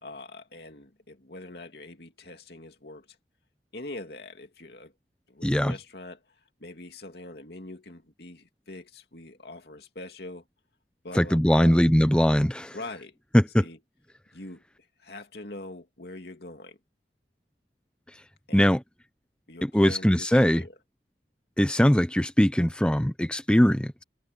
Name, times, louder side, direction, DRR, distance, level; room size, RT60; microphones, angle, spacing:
voice 1, 0.0-3.1 3.7-4.9 5.3-6.2 6.6-10.4 11.0-11.8 12.7-13.2 13.6-13.8 14.3-14.6 15.0-16.8 18.5-18.8 19.5-20.7, left 2 dB, 60° left, 2.7 m, -43 dB
voice 2, 5.4-5.7 11.1-12.8 13.3-13.7 18.5-18.8 19.6-20.6 21.6-24.0, equal, 5° left, 0.6 m, -21 dB
head